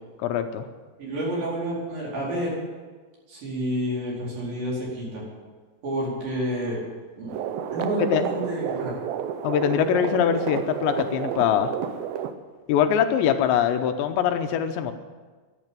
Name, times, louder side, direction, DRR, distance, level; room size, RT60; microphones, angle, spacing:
voice 1, 0.2-0.7 8.0-8.2 9.4-11.7 12.7-14.9, left 9 dB, 80° left, 7 dB, 3.0 m, -23 dB
voice 2, 1.0-2.6 3.3-5.2 5.8-6.8 7.2-7.4 7.7-9.0, equal, 50° right, -5 dB, 6.1 m, -29 dB
sound 1, 7.3-12.3, right 9 dB, 80° right, 2.1 m, -30 dB
12.5 x 11.0 x 9.0 m, 1.4 s
omnidirectional pair, 5.3 m